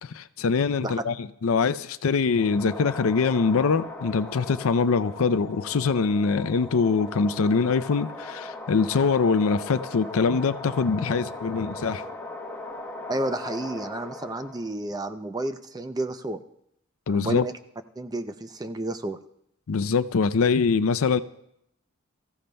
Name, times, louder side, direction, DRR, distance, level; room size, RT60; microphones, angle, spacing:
voice 1, 0.0-12.0 17.1-17.4 19.7-21.2, left 5 dB, 80° left, 0.5 m, -23 dB
sound 1, 2.3-14.7, left 2 dB, 10° left, 1.1 m, -39 dB
voice 2, 13.1-16.4 17.1-17.5 18.0-19.2, right 2 dB, 20° right, 0.5 m, -31 dB
24.0 x 15.0 x 2.2 m
head